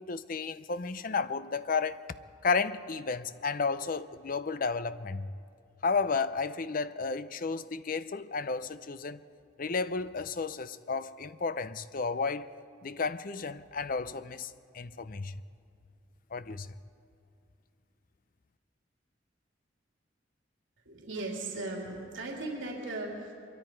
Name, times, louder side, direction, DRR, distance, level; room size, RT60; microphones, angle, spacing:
voice 1, 0.0-2.0 2.4-5.3 5.8-9.2 9.6-12.5 12.8-15.4 16.3-16.7, left 4 dB, 45° left, 0.6 m, -32 dB
voice 2, 20.8-23.3, right 2 dB, 85° right, 3.3 m, -37 dB
24.5 x 23.0 x 4.6 m
head